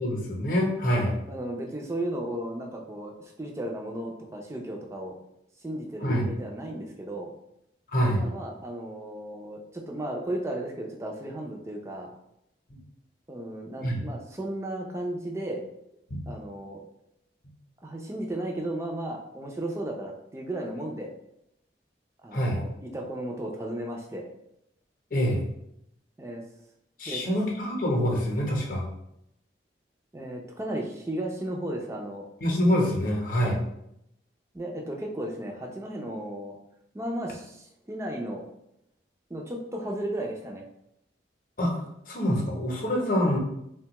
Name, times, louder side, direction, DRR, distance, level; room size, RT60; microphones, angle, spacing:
voice 1, 0.0-1.1 6.0-6.3 7.9-8.2 13.8-14.0 16.1-16.2 22.3-22.6 25.1-25.4 27.0-28.9 32.4-33.6 41.6-43.4, equal, 50° left, 0 dB, 0.7 m, -25 dB
voice 2, 1.0-5.2 5.6-7.3 8.1-12.1 13.3-15.6 16.3-16.8 17.8-21.1 22.2-24.3 26.2-26.4 27.1-27.4 30.1-32.3 33.4-33.6 34.5-36.6 36.9-38.4 39.3-40.7, right 1 dB, 15° right, 0 dB, 0.4 m, -35 dB
3.8 x 2.2 x 2.9 m, 0.79 s
head